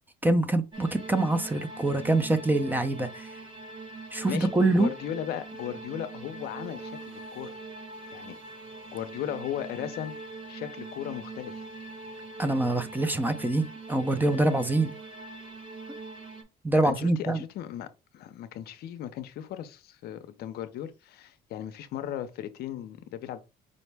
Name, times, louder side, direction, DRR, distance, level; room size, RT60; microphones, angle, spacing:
voice 1, 0.2-3.3 4.1-4.9 12.4-14.9 16.6-17.4, right 2 dB, 10° right, 0.4 m, -25 dB
sound 1, 0.7-16.4, right 3 dB, 30° right, 1.0 m, -42 dB
voice 2, 4.3-7.6 8.1-8.4 8.9-10.1 10.5-11.7 16.7-23.4, left 11 dB, 70° left, 0.5 m, -37 dB
5.1 x 2.1 x 3.3 m
cardioid pair, 110°, 17 cm